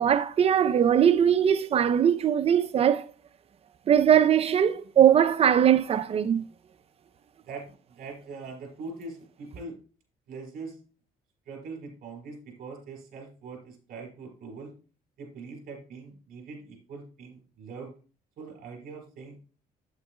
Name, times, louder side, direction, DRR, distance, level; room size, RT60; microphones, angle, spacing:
voice 1, 0.0-3.0 3.9-6.5, right 9 dB, 40° right, 0.5 m, -21 dB
voice 2, 7.5-9.8 10.3-10.8 11.5-14.7 15.2-17.9 18.4-19.4, right 4 dB, 65° right, 3.9 m, -42 dB
8.7 x 8.2 x 2.2 m
cardioid pair, 105°, 16 cm